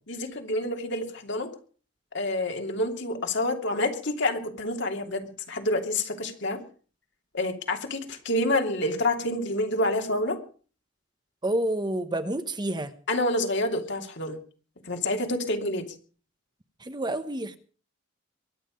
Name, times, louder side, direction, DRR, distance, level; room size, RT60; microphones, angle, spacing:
voice 1, 0.1-1.5 2.1-6.6 7.3-10.4 13.1-14.4 14.9-15.9, left 1 dB, 65° left, 4 dB, 2.8 m, -28 dB
voice 2, 11.4-12.9 16.9-17.6, right 1 dB, 20° right, 10 dB, 1.1 m, -28 dB
23.0 x 9.9 x 5.2 m, 0.40 s
head